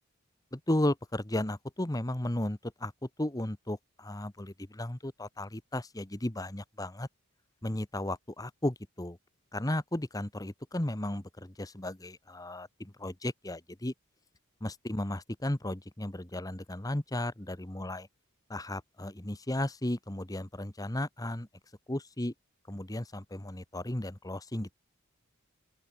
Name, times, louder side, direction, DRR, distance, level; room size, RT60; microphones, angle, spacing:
voice 1, 0.5-2.9 3.2-7.1 7.6-9.2 9.5-13.9 14.6-18.1 18.5-21.5 21.9-22.3 22.7-24.7, left 1 dB, 15° left, 1.1 m, -34 dB
open air
head